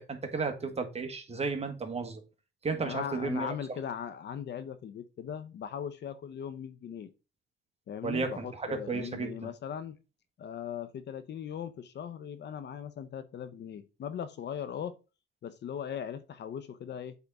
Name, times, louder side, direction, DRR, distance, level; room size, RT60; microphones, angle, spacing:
voice 1, 0.0-2.2 2.6-3.5 8.0-9.5, right 4 dB, 30° right, 1.7 m, -33 dB
voice 2, 2.8-7.1 7.9-10.0 10.4-14.9 15.4-17.1, left 8 dB, 60° left, 0.8 m, -39 dB
8.2 x 3.7 x 4.1 m
cardioid pair, 90°, 20 cm